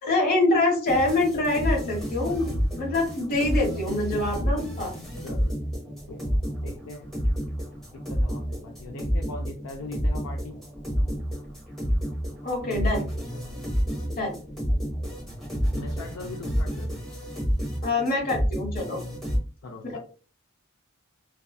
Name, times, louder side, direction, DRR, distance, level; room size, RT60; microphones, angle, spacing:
voice 1, 0.0-2.5 2.8-4.9 12.4-13.0 14.1-14.4 17.8-19.0 19.8-20.0, left 2 dB, 45° left, 0 dB, 1.1 m, -25 dB
sound 1, 0.9-19.4, equal, ahead, 0.8 m, -29 dB
voice 2, 5.2-5.5 5.9-6.2 6.6-7.1 8.1-10.5 12.6-13.7 15.7-17.0 19.6-20.0, left 3 dB, 75° left, 2 dB, 0.4 m, -41 dB
2.6 x 2.3 x 2.3 m, 0.37 s
head